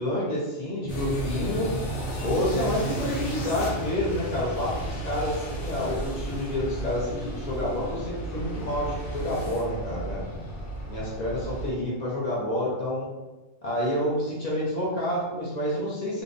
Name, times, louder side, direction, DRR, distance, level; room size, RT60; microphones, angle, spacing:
voice 1, 0.0-1.7 2.2-10.2 10.9-13.1 13.6-16.2, left 1 dB, 50° left, -6 dB, 0.5 m, -29 dB
sound 1, 0.9-11.7, right 1 dB, 80° left, 1.1 m, -33 dB
2.6 x 2.1 x 2.5 m, 1.1 s
omnidirectional pair, 1.4 m